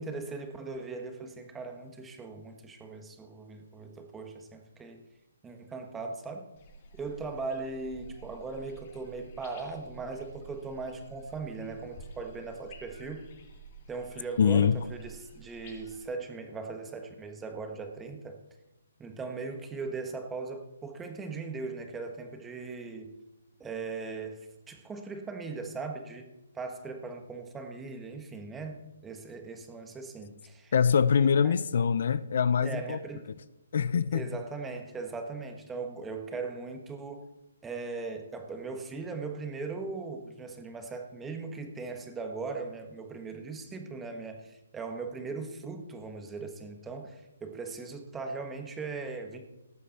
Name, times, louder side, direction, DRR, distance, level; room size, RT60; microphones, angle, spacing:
voice 1, 0.0-5.0 5.4-6.5 6.9-13.3 13.9-18.4 19.0-23.1 23.6-26.3 26.5-30.7 31.1-31.6 32.6-33.3 34.1-37.3 37.6-49.4, right 4 dB, 10° right, 1.4 m, -39 dB
sound 1, 6.6-16.0, right 2 dB, 40° left, 4.5 m, -51 dB
voice 2, 14.4-14.8 30.7-33.0 33.7-34.3, left 7 dB, 60° left, 0.5 m, -24 dB
18.5 x 8.3 x 4.3 m
hypercardioid pair, 155°, 0 cm